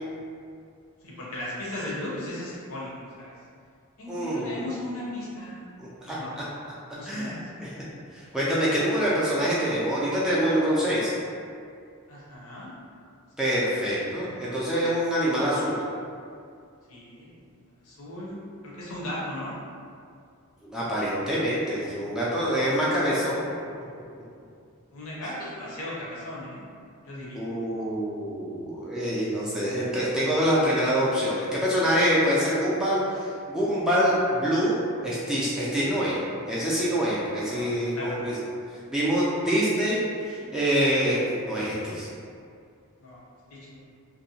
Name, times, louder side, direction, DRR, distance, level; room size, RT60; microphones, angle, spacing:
voice 1, 1.0-3.3 4.0-5.7 6.2-6.3 6.9-7.4 12.1-12.7 16.9-17.3 17.9-18.4 18.6-19.5 24.9-26.6 27.0-27.4 37.5-38.3 43.0-43.2 43.5-43.7, left 1 dB, 70° left, -6 dB, 0.7 m, -36 dB
voice 2, 4.1-4.7 5.8-6.4 7.0-7.7 8.1-11.1 13.4-15.8 20.6-23.4 27.3-34.8 35.0-36.2 36.5-38.4 38.9-42.1, equal, 5° right, -8 dB, 0.3 m, -25 dB
2.7 x 2.1 x 2.7 m, 2.4 s
head